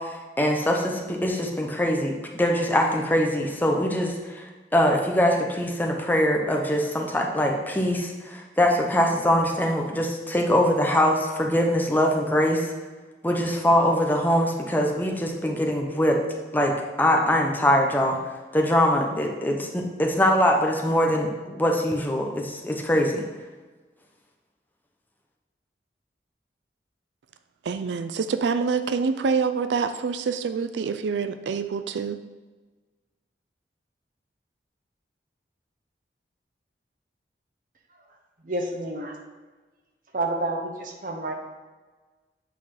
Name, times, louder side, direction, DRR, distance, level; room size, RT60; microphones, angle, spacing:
voice 1, 0.0-12.7 13.2-16.2 16.5-16.7 17.0-18.2 18.5-23.2, equal, 10° left, 1 dB, 0.8 m, -23 dB
voice 2, 27.6-32.2, right 5 dB, 90° right, 10 dB, 0.4 m, -26 dB
voice 3, 38.4-39.2 40.1-41.3, right 2 dB, 50° right, 3 dB, 1.0 m, -29 dB
8.3 x 4.1 x 4.8 m, 1.3 s
head